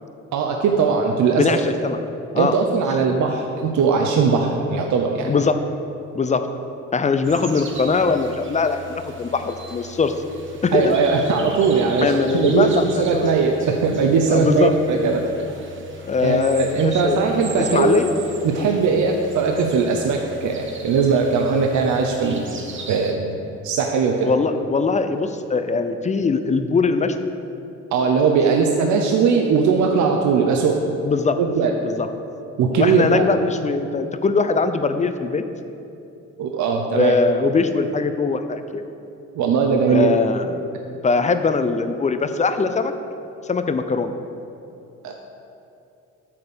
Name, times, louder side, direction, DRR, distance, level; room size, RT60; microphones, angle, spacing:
voice 1, 0.3-1.6 2.4-5.3 10.7-15.2 16.2-17.9 18.4-22.4 22.9-23.3 23.6-24.3 27.9-30.8 31.4-31.7 32.6-33.3 36.4-37.1 39.4-40.1 45.0-45.2, right 5 dB, 75° right, 2 dB, 0.7 m, -19 dB
voice 2, 1.3-2.0 2.3-2.5 5.3-5.6 6.1-6.5 6.9-10.1 10.6-10.9 12.0-13.3 14.3-14.7 16.0-17.2 17.6-18.1 18.5-18.7 24.2-27.2 31.0-31.4 31.8-32.1 32.7-35.4 36.9-38.8 39.9-40.5 41.0-42.9 43.4-44.1, left 4 dB, 25° left, 9 dB, 0.5 m, -21 dB
sound 1, 7.2-23.1, right 2 dB, 40° right, 1.1 m, -38 dB
8.6 x 4.3 x 6.9 m, 2.7 s
cardioid pair, 90°, 30 cm